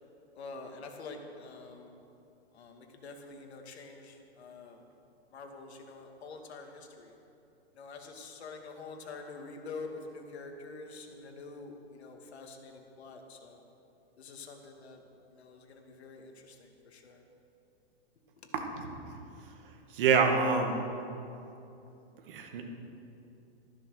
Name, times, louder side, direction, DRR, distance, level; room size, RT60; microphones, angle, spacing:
voice 1, 0.3-1.9 2.5-4.8 5.3-7.1 7.8-13.6 14.2-15.0 15.3-17.2 18.4-18.5, left 3 dB, 75° left, 3 dB, 2.5 m, -46 dB
voice 2, 19.9-20.8 22.3-22.6, right 5 dB, 55° right, 2 dB, 2.1 m, -25 dB
14.0 x 12.5 x 6.6 m, 2.8 s
hypercardioid pair, 170°, 32 cm